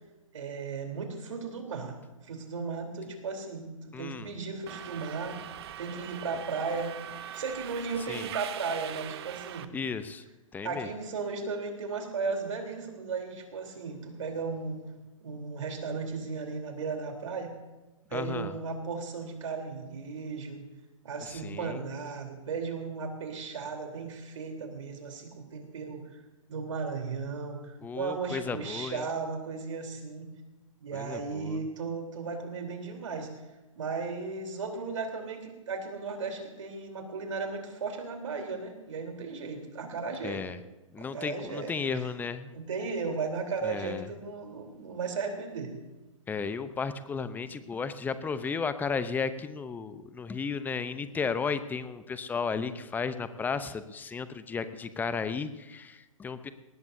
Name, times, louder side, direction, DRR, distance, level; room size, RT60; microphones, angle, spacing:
voice 1, 0.3-5.4 5.8-7.0 7.3-9.7 10.6-14.8 15.2-17.5 18.1-20.6 21.0-26.2 26.5-30.3 30.8-33.3 33.8-40.4 41.0-42.1 42.5-45.7, right 4 dB, 65° right, 3 dB, 3.7 m, -35 dB
voice 2, 3.9-4.3 8.1-8.3 9.7-10.2 10.5-10.9 18.1-18.5 21.3-21.8 27.8-29.0 30.9-31.6 40.2-40.6 40.9-42.5 43.6-44.1 46.3-56.5, left 5 dB, 10° left, 12 dB, 0.7 m, -34 dB
Subway metro underground, 4.7-9.6, right 11 dB, 50° right, 0.9 m, -41 dB
20.5 x 19.0 x 2.7 m, 1.1 s
figure-of-eight pair, 125°, 17 cm